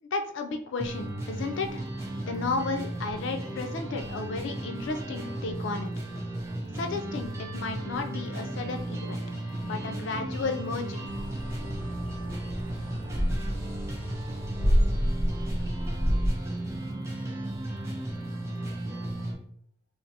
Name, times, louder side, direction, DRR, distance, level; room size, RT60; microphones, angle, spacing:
voice 1, 0.0-1.9 2.1-5.9 6.7-9.2 9.6-11.1, left 3 dB, 60° left, 5 dB, 0.4 m, -33 dB
sound 1, 0.8-19.3, right 1 dB, 15° right, 0.4 m, -35 dB
sound 2, 11.0-16.3, equal, 25° left, 0.7 m, -29 dB
voice 2, 14.6-15.7 16.4-17.4 17.8-19.4, right 2 dB, 55° right, -2 dB, 0.7 m, -61 dB
3.1 x 2.0 x 2.7 m, 0.67 s
head